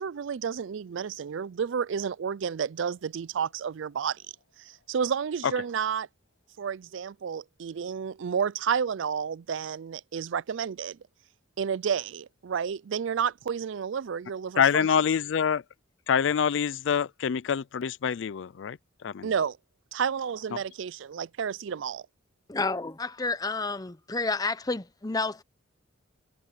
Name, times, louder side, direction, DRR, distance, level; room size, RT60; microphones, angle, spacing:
voice 1, 0.0-4.2 4.6-6.1 6.6-11.0 11.6-14.9 19.2-19.6 19.9-22.1, right 7 dB, 70° right, 0.4 m, -31 dB
voice 2, 14.6-15.6 16.1-19.3, left 7 dB, 65° left, 0.4 m, -26 dB
voice 3, 22.5-25.4, left 3 dB, 20° left, 0.7 m, -30 dB
head